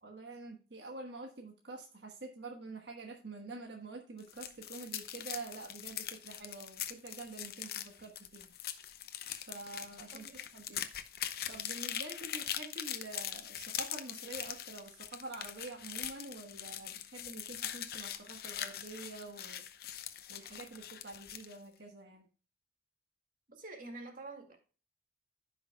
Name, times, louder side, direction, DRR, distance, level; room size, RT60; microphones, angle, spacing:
voice 1, 0.0-8.5 9.5-10.8 11.5-19.6 20.3-22.3, right 3 dB, 80° right, 1.3 m, -47 dB
sound 1, 4.2-21.6, left 10 dB, 60° left, 0.7 m, -42 dB
voice 2, 10.1-10.4 23.5-24.6, right 2 dB, 50° right, 2.1 m, -47 dB
15.0 x 5.7 x 2.2 m
head